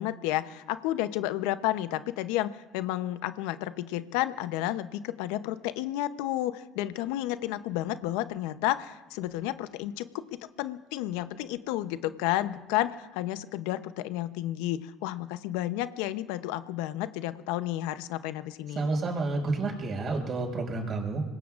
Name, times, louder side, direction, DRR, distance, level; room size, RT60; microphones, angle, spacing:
voice 1, 0.0-18.9, left 14 dB, 85° left, 12 dB, 0.7 m, -31 dB
voice 2, 18.8-21.2, right 3 dB, 45° right, 2 dB, 5.2 m, -30 dB
25.5 x 20.5 x 2.5 m, 1.1 s
supercardioid pair, 80°, 0 cm